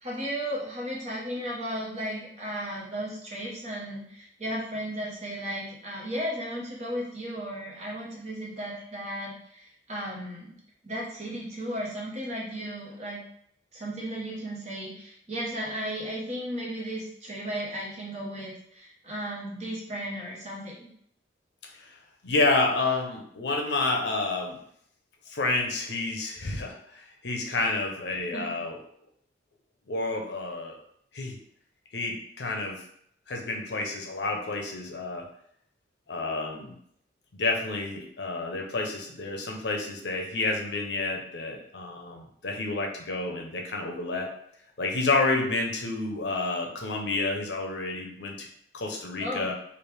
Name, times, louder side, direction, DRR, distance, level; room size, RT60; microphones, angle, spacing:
voice 1, 0.0-10.5 10.8-13.2 13.7-20.9 28.3-28.5 49.2-49.5, equal, 40° right, -4 dB, 1.0 m, -35 dB
voice 2, 22.2-24.6 25.3-28.8 29.9-30.8 31.1-31.4 31.9-32.8 33.3-35.3 36.1-36.7 37.3-44.3 44.8-48.4 48.7-49.5, left 3 dB, 70° left, 2 dB, 0.6 m, -29 dB
3.3 x 2.4 x 3.2 m, 0.68 s
head